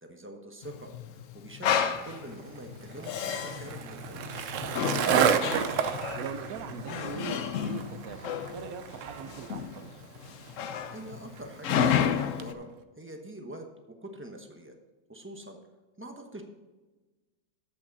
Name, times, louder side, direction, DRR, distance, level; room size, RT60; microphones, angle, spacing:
voice 1, 0.0-4.3 10.7-12.7 13.0-14.7 15.1-15.6 16.0-16.4, right 1 dB, 15° right, 3 dB, 0.4 m, -45 dB
Male speech man speaking, 0.6-12.5, left 8 dB, 75° left, 0.7 m, -32 dB
Skateboard, 2.0-12.5, right 7 dB, 90° right, 0.6 m, -32 dB
sound 1, 4.4-9.7, equal, 45° right, 2.4 m, -55 dB
voice 2, 5.1-9.9, right 7 dB, 65° right, 10 dB, 1.0 m, -42 dB
13.5 x 5.8 x 4.0 m, 1.2 s
omnidirectional pair, 2.1 m